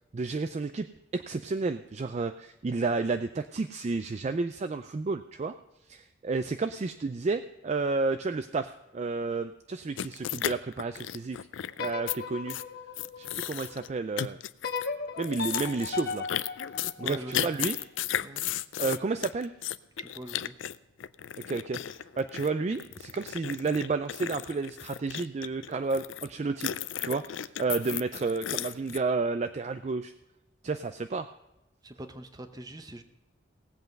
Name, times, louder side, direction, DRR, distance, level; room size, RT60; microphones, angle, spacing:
voice 1, 0.1-0.9 1.1-5.5 5.9-11.4 11.8-12.6 13.2-14.4 15.2-16.2 17.0-17.8 18.8-19.5 21.5-21.8 22.2-26.7 27.0-30.1 30.6-31.3, right 3 dB, 35° right, 10 dB, 0.4 m, -31 dB
sound 1, 10.0-12.2 12.5-12.6 12.9-13.9 14.2-14.9 15.2-26.3 26.6-29.0, left 11 dB, 75° left, 0.4 m, -35 dB
sound 2, 11.7-13.9 14.6-17.8, left 5 dB, 55° left, 1.3 m, -37 dB
voice 2, 17.0-17.5 18.2-18.4 20.0-20.6 31.8-33.0, right 1 dB, 20° right, 8 dB, 0.9 m, -43 dB
18.0 x 8.0 x 5.3 m, 0.95 s
head